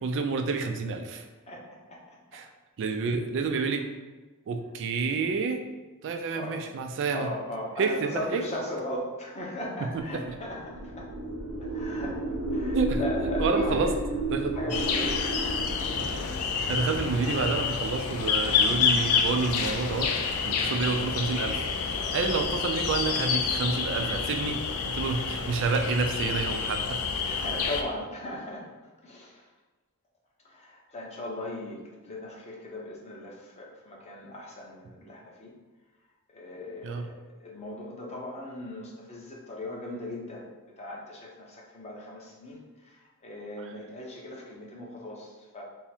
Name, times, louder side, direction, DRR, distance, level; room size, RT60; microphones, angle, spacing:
voice 1, 0.0-1.2 2.3-2.5 2.8-3.9 4.5-5.6 6.0-7.3 7.8-8.4 9.8-10.4 12.7-13.0 13.4-14.0 14.3-14.7 16.0-16.1 16.7-20.1 20.5-27.0 36.8-37.1 43.6-43.7, right 4 dB, 60° right, 6 dB, 0.3 m, -29 dB
voice 2, 1.5-2.2 6.3-6.6 7.1-11.1 11.7-12.2 12.5-13.9 14.5-15.3 27.3-28.7 29.0-29.4 30.4-35.5 36.3-40.4 40.8-45.6, left 1 dB, 30° left, -3 dB, 0.8 m, -38 dB
sound 1, 10.2-16.4, right 2 dB, 75° right, 0.7 m, -32 dB
sound 2, 14.7-27.8, left 5 dB, 75° left, 0.4 m, -28 dB
3.5 x 2.1 x 4.3 m, 1.2 s
head